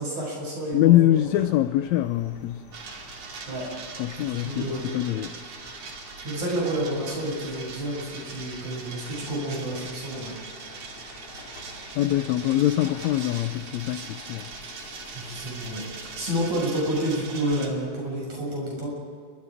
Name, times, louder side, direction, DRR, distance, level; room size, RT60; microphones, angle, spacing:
voice 1, 0.0-1.2 3.5-3.6 4.2-5.1 6.2-10.3 15.1-18.9, right 1 dB, 80° right, -3 dB, 8.4 m, -30 dB
voice 2, 0.7-2.6 4.0-5.4 12.0-14.5, left 14 dB, 75° left, 10 dB, 1.9 m, -23 dB
sound 1, 1.1-16.6, left 2 dB, 55° left, 3.9 m, -49 dB
sound 2, 2.7-17.7, right 4 dB, 60° right, 3.6 m, -41 dB
28.0 x 24.0 x 5.0 m, 2.2 s
omnidirectional pair, 3.4 m